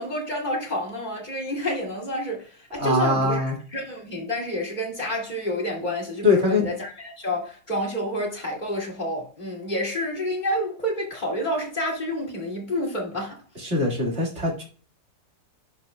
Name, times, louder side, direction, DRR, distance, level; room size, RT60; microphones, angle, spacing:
voice 1, 0.0-3.4 3.7-13.4, left 1 dB, 25° left, 2.4 m, -29 dB
voice 2, 2.8-3.6 6.2-6.7 13.6-14.6, left 2 dB, 35° right, 2.1 m, -22 dB
10.5 x 6.1 x 2.2 m
omnidirectional pair, 2.0 m